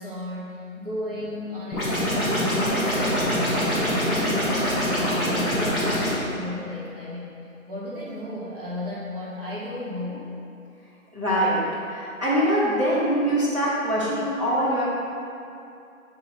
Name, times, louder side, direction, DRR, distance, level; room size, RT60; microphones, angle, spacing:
voice 1, 0.0-4.5 4.9-7.3 7.6-10.3, left 1 dB, 40° right, -8 dB, 1.4 m, -34 dB
sound 1, 1.7-6.1, equal, ahead, 0.7 m, -24 dB
voice 2, 11.1-11.6 11.9-14.8, equal, 20° right, -11 dB, 1.0 m, -23 dB
6.3 x 3.9 x 4.1 m, 2.6 s
figure-of-eight pair, 170°, 42 cm